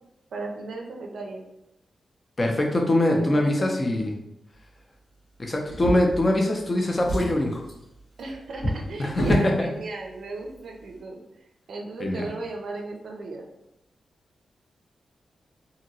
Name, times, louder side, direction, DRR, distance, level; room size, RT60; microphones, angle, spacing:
voice 1, 0.3-1.5 3.2-3.7 8.2-11.4 11.7-13.5, right 3 dB, 70° right, 2 dB, 0.4 m, -36 dB
voice 2, 2.4-4.1 5.4-7.6 9.0-9.7 12.0-12.2, left 1 dB, 25° left, 1 dB, 0.4 m, -23 dB
Drawer open or close, 5.6-6.6 6.9-9.6 10.4-10.6 11.0-11.1, equal, 85° left, 1.2 m, -29 dB
2.8 x 2.6 x 2.7 m, 0.85 s
wide cardioid pair, 175°, 0 cm